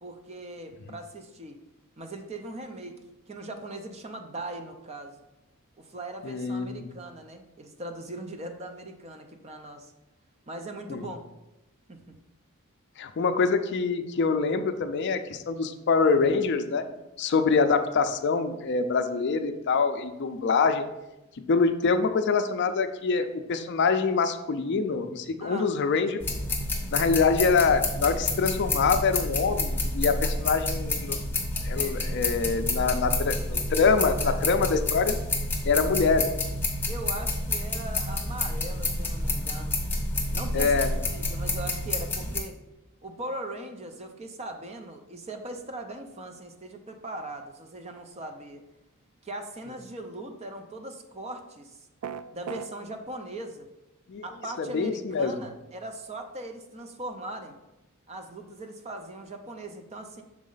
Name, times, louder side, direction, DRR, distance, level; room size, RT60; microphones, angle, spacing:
voice 1, 0.0-1.6 2.0-3.0 3.3-5.2 5.8-9.9 10.5-11.3 11.9-12.1 25.4-25.7 34.2-34.4 36.9-39.8 40.3-40.8 41.0-42.6 43.0-48.6 49.2-51.8 52.3-53.7 54.2-57.6 58.1-60.2, right 1 dB, 30° right, 6 dB, 0.6 m, -39 dB
voice 2, 6.2-6.8 10.9-11.1 13.0-16.8 17.2-20.9 21.5-26.2 26.9-31.2 31.6-35.2 35.6-36.3 40.5-41.0 54.1-54.2 54.6-55.3, left 4 dB, 55° left, 8 dB, 0.4 m, -25 dB
sound 1, 26.2-42.4, left 2 dB, 10° left, 0.7 m, -29 dB
sound 2, 52.0-52.7, right 8 dB, 80° right, 0.3 m, -35 dB
6.2 x 4.2 x 3.8 m, 0.96 s
head